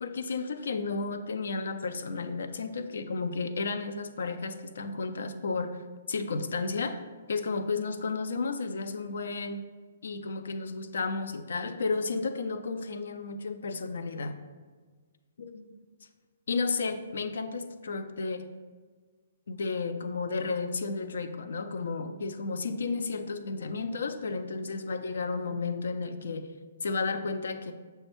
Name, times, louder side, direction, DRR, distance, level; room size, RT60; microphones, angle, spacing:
voice 1, 0.0-5.8 6.1-7.0 7.3-9.6 10.0-14.4 15.4-15.6 16.5-18.5 19.5-26.5 26.8-27.7, left 4 dB, 65° left, 9 dB, 0.3 m, -32 dB
6.4 x 2.2 x 3.0 m, 1.5 s
figure-of-eight pair, 125°, 0 cm